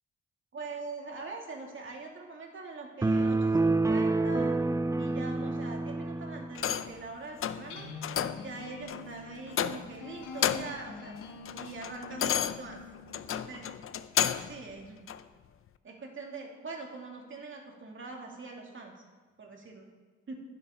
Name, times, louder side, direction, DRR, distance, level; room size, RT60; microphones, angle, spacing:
voice 1, 0.5-4.6 5.0-7.9 8.3-11.1 11.5-12.8 13.3-13.7 14.4-15.0 15.8-18.9 19.4-19.9 20.3-20.4, right 3 dB, 40° right, 1 dB, 2.5 m, -43 dB
sound 1, 3.0-6.6, right 2 dB, 10° right, 0.4 m, -27 dB
sound 2, 6.5-7.0 7.4-7.7 8.0-8.5 8.9-9.1 9.5-10.0 10.3-10.8 11.2-14.6 15.1-15.2, left 9 dB, 45° left, 0.6 m, -31 dB
sound 3, 7.6-13.5, left 3 dB, 90° left, 1.5 m, -46 dB
11.0 x 10.5 x 3.8 m, 1.4 s
cardioid pair, 90°, 30 cm